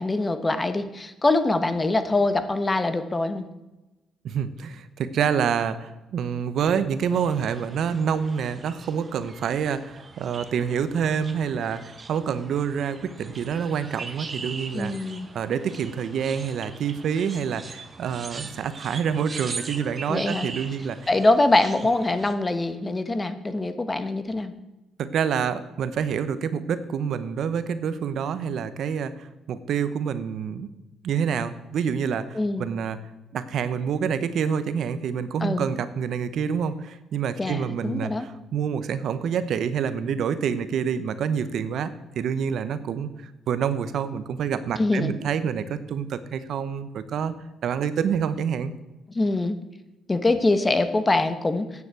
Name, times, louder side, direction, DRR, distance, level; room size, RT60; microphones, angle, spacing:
voice 1, 0.0-3.5 14.7-15.3 20.1-20.5 21.1-24.5 32.3-32.7 35.4-35.7 37.4-38.3 44.8-45.2 49.1-49.6 50.1-51.7, left 2 dB, 20° left, 10 dB, 1.1 m, -23 dB
voice 2, 4.2-14.9 15.3-21.0 25.0-30.7 31.0-33.0 33.3-47.4 47.6-48.7, right 7 dB, 70° right, 13 dB, 0.8 m, -27 dB
sound 1, 7.0-22.3, right 4 dB, 35° right, 1.1 m, -41 dB
9.6 x 7.2 x 7.7 m, 1.0 s
cardioid pair, 90°, 0 cm